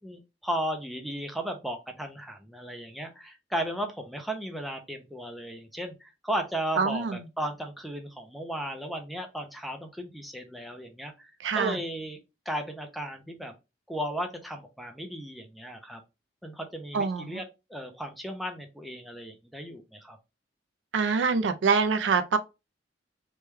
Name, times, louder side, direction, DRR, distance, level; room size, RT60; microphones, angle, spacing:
voice 1, 0.0-12.2 12.5-13.5 13.9-16.0 16.4-17.4 17.7-20.2, right 1 dB, ahead, 0.4 m, -35 dB
voice 2, 6.8-7.2 11.4-11.8 16.9-17.4 20.9-22.4, right 5 dB, 75° right, 0.4 m, -25 dB
3.1 x 2.2 x 3.2 m
head